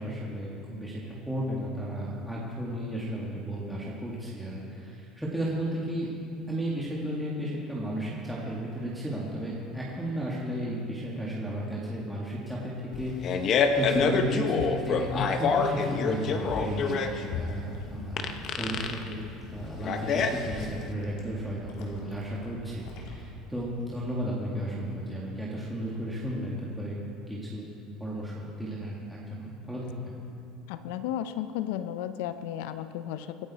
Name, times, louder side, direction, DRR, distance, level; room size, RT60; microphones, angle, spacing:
voice 1, 0.0-6.1 6.5-19.2 19.5-27.0 27.3-27.7 28.0-29.8, equal, 5° right, -6 dB, 1.9 m, -34 dB
Fart, 12.9-20.9, left 5 dB, 40° left, 0.9 m, -27 dB
sound 1, 17.4-24.3 24.6-25.0, left 2 dB, 65° left, 3.0 m, -47 dB
voice 2, 30.7-33.5, left 11 dB, 85° left, 11 dB, 0.6 m, -34 dB
25.0 x 9.5 x 4.2 m, 2.6 s
cardioid pair, 145°, 0 cm